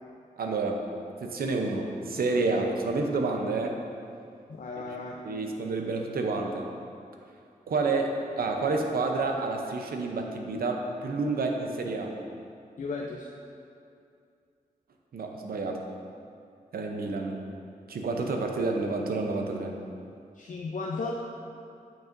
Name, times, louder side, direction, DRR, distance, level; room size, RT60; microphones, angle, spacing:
voice 1, 0.4-0.8 1.2-3.8 4.8-4.9 5.2-6.7 7.7-12.1 15.1-15.8 16.7-17.4 17.9-19.7, right 3 dB, 85° right, 2 dB, 0.7 m, -29 dB
voice 2, 4.5-5.2 12.8-13.3 20.3-21.2, left 3 dB, 60° left, -2 dB, 0.6 m, -35 dB
8.8 x 6.1 x 2.6 m, 2.5 s
cardioid pair, 55°, 15 cm